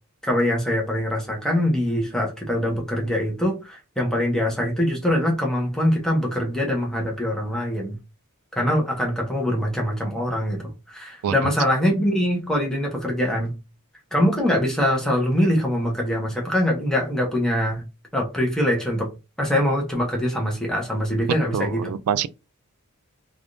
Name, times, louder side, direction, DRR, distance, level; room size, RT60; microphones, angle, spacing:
voice 1, 0.3-8.0 8.6-13.6 14.1-17.8 18.1-19.1 19.4-21.9, equal, 5° left, 0.8 m, -23 dB
voice 2, 21.5-22.3, right 8 dB, 80° right, 0.3 m, -25 dB
3.3 x 2.4 x 2.5 m
head